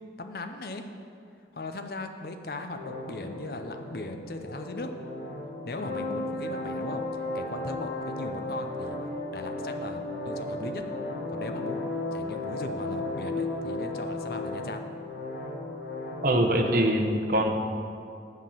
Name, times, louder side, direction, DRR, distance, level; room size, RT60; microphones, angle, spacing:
voice 1, 0.2-0.8 1.5-4.9 5.7-7.0 7.3-9.0 9.3-10.8 11.3-11.9 12.1-14.8, left 2 dB, 55° left, 6 dB, 0.6 m, -38 dB
sound 1, 2.7-16.7, left 2 dB, 85° left, 1.3 m, -35 dB
voice 2, 16.2-17.6, right 1 dB, 50° right, 3 dB, 0.8 m, -23 dB
7.6 x 5.9 x 7.1 m, 2.4 s
head